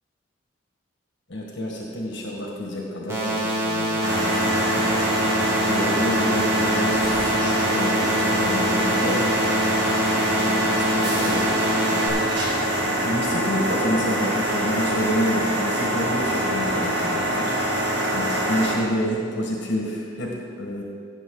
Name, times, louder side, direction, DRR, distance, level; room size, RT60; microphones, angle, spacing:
voice 1, 1.3-5.4 5.6-9.2 10.4-20.8, equal, 65° left, -1 dB, 1.7 m, -29 dB
sound 1, 3.1-12.1, equal, 15° right, 2.2 m, -25 dB
sound 2, 4.0-18.7, right 1 dB, 65° right, 2.0 m, -24 dB
16.5 x 7.3 x 3.9 m, 2.2 s
head